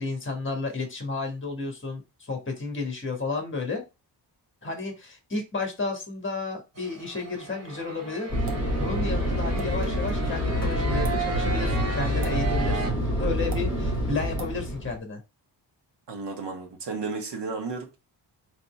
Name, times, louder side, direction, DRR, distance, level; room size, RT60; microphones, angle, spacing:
voice 1, 0.0-2.0 2.3-3.8 4.6-8.4 8.8-15.2, left 3 dB, 30° left, 1.6 m, -32 dB
sound 1, 6.8-12.9, right 4 dB, 35° right, 1.3 m, -35 dB
Fixed-wing aircraft airplane, 8.3-15.0, equal, 10° left, 2.1 m, -27 dB
sound 2, 8.5-8.7 9.6-9.7 10.9-11.2 12.2-12.4 13.5-13.6 14.4-14.5, right 4 dB, 50° right, 1.1 m, -39 dB
voice 2, 16.1-18.0, right 4 dB, 70° right, 1.4 m, -33 dB
4.1 x 3.3 x 3.2 m
wide cardioid pair, 125°, 43 cm